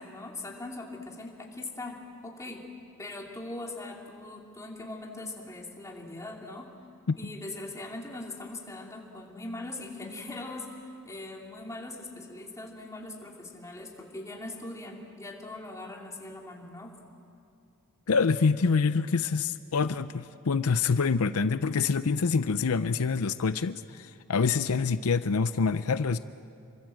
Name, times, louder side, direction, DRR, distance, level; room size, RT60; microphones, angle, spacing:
voice 1, 0.0-2.6 3.0-6.7 7.2-17.0, left 2 dB, 15° left, 0 dB, 2.9 m, -41 dB
voice 2, 18.1-26.2, left 5 dB, 80° left, 12 dB, 0.6 m, -26 dB
27.5 x 24.0 x 7.7 m, 2.7 s
head